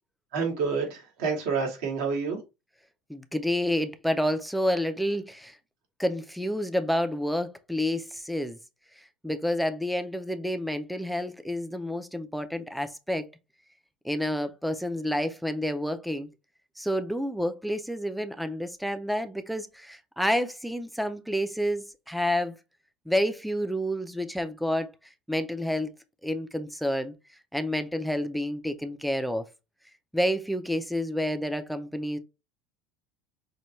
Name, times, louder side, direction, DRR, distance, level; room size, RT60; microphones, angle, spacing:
voice 1, 0.3-2.4, right 5 dB, 75° right, 1.8 m, -28 dB
voice 2, 3.1-5.6 6.0-8.6 9.2-13.2 14.0-16.3 16.8-22.6 23.1-24.9 25.3-25.9 26.2-27.1 27.5-29.5 30.1-32.2, equal, ahead, 0.4 m, -29 dB
5.4 x 2.2 x 3.1 m
cardioid pair, 155°, 0 cm